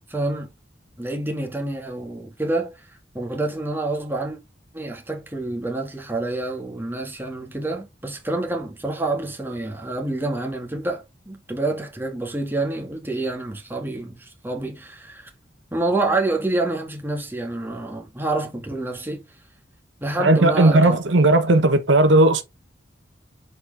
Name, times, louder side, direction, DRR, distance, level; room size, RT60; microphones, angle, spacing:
voice 1, 0.1-0.5 1.0-2.8 3.1-4.4 4.7-15.3 15.7-19.2 20.0-21.0, right 2 dB, 10° right, 1.7 m, -27 dB
voice 2, 20.2-22.4, right 2 dB, 80° right, 1.0 m, -16 dB
7.0 x 4.3 x 3.4 m
head